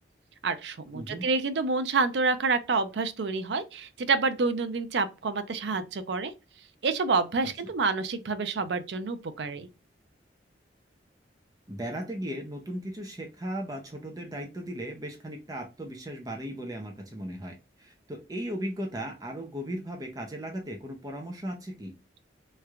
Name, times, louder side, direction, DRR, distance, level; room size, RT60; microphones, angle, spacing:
voice 1, 0.4-6.3 6.8-9.7, right 4 dB, 75° right, 0.5 m, -28 dB
voice 2, 0.9-1.3 11.7-21.9, equal, 20° right, 0.6 m, -37 dB
3.3 x 3.1 x 2.4 m
head